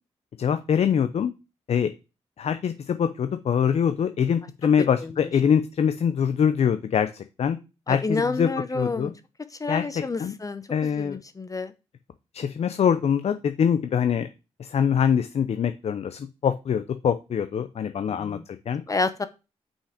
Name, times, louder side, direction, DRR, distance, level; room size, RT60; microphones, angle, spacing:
voice 1, 0.4-1.3 1.7-1.9 2.4-7.6 7.9-8.5 8.7-9.1 9.7-10.3 10.7-11.2 12.3-14.3 14.6-18.4 18.7-18.8, left 7 dB, 60° left, 10 dB, 0.7 m, -24 dB
voice 2, 7.9-9.1 9.6-10.7 11.0-11.7 18.1-18.4 18.9-19.3, left 3 dB, 30° left, 11 dB, 0.8 m, -29 dB
5.6 x 5.6 x 5.0 m, 0.29 s
cardioid pair, 60°, 12 cm